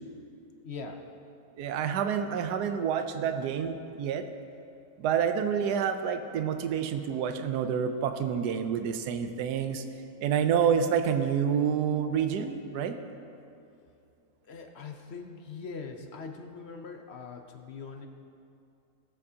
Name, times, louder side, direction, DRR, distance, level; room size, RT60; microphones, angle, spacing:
voice 1, 0.6-1.1 14.5-18.1, left 5 dB, 55° left, 5 dB, 0.8 m, -42 dB
voice 2, 1.6-4.2 5.0-9.8 10.2-13.0, right 7 dB, 85° right, 8 dB, 1.2 m, -28 dB
19.0 x 7.7 x 2.8 m, 2.6 s
omnidirectional pair, 1.7 m